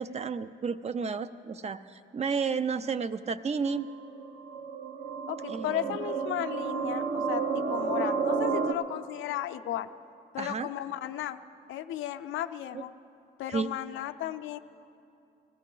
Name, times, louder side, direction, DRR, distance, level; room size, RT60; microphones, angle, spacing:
voice 1, 0.0-3.9 5.5-6.0 10.4-10.7 12.7-12.8 13.5-13.7, right 5 dB, 35° right, 13 dB, 0.4 m, -32 dB
sound 1, 3.7-8.7, right 5 dB, 55° right, 0.8 m, -31 dB
voice 2, 5.3-9.9 10.3-11.4 11.7-12.9 13.4-14.6, left 12 dB, 80° left, 10 dB, 0.5 m, -35 dB
16.0 x 15.0 x 3.8 m, 2.5 s
cardioid pair, 90°, 20 cm